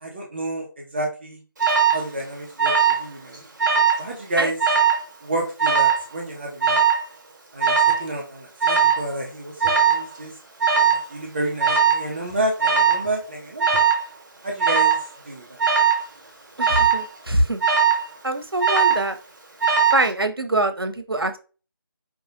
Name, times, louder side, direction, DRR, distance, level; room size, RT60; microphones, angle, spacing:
voice 1, 0.0-1.4 1.9-3.4 4.0-4.6 5.2-6.8 7.5-10.4 10.8-13.8 14.4-15.0 15.3-15.6, right 2 dB, 30° right, -2 dB, 0.6 m, -30 dB
Alarm, 1.6-2.0 2.6-3.1 3.3-4.0 4.6-5.0 5.6-6.0 6.6-7.0 7.6-8.0 8.6-9.0 9.6-10.0 10.6-11.0 11.6-12.0 12.6-13.1 13.6-14.0 14.6-15.0 15.6-16.0 16.6-17.0 17.6-18.1 18.6-19.1 19.6-20.1, right 7 dB, 50° right, 1.1 m, -19 dB
voice 2, 16.6-17.6 18.2-19.1 19.9-21.4, right 1 dB, 90° right, 8 dB, 0.7 m, -23 dB
4.8 x 2.6 x 2.5 m, 0.35 s
figure-of-eight pair, 160°, 12 cm